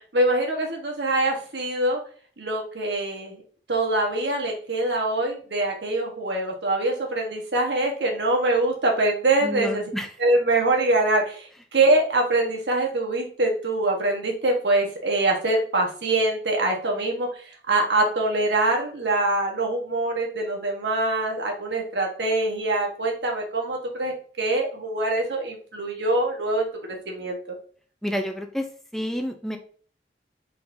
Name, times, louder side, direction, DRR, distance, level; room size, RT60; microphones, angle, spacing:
voice 1, 0.1-2.0 2.4-3.4 3.7-9.8 10.2-26.6 27.1-27.4, right 2 dB, 80° right, 1 dB, 1.2 m, -24 dB
voice 2, 9.4-10.1 28.0-29.6, equal, ahead, 4 dB, 0.4 m, -29 dB
4.3 x 3.8 x 2.6 m, 0.44 s
head